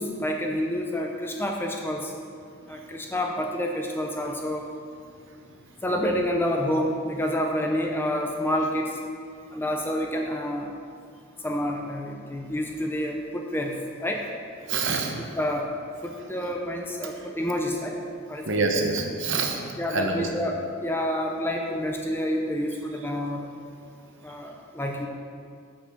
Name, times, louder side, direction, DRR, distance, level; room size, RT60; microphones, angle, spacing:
voice 1, 0.0-2.1 2.7-4.7 5.8-9.0 9.5-10.7 11.4-14.2 15.4-15.7 16.0-18.0 18.3-18.6 19.8-23.5 24.2-25.1, equal, 10° left, 1 dB, 0.5 m, -28 dB
voice 2, 14.7-15.2 18.5-19.6 19.9-20.3, right 4 dB, 55° right, 3 dB, 0.9 m, -26 dB
6.5 x 5.9 x 6.9 m, 2.2 s
head